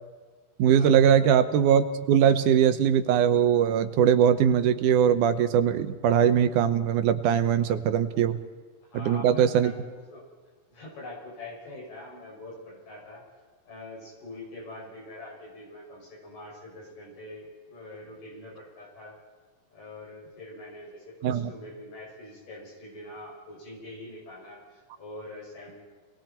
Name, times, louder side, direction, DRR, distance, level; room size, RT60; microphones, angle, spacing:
voice 1, 0.6-8.4 8.9-9.7 21.2-21.5, right 8 dB, 75° right, 10 dB, 2.2 m, -21 dB
voice 2, 8.8-10.2 10.7-13.2 13.7-19.2 19.7-25.8, left 2 dB, 75° left, -4 dB, 8.2 m, -44 dB
28.0 x 21.0 x 4.5 m, 1.4 s
omnidirectional pair, 3.9 m